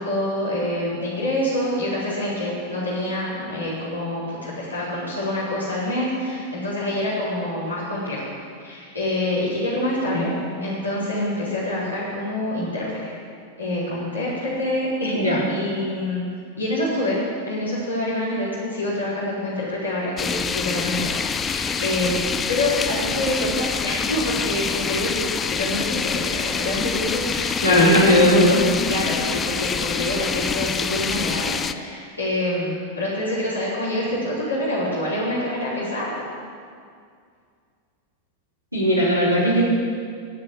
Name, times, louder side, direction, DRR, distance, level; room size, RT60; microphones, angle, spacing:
voice 1, 0.0-8.3 8.6-10.3 10.6-13.1 13.6-16.2 16.6-25.2 25.5-28.2 28.9-36.1, left 1 dB, 85° left, -9 dB, 4.3 m, -26 dB
voice 2, 10.0-10.5 15.1-15.4 27.6-28.6 38.7-39.6, equal, 85° right, -9 dB, 4.3 m, -18 dB
sound 1, 20.2-31.7, left 6 dB, 20° left, 0.6 m, -26 dB
18.5 x 6.6 x 9.4 m, 2.2 s
figure-of-eight pair, 90°, 0 cm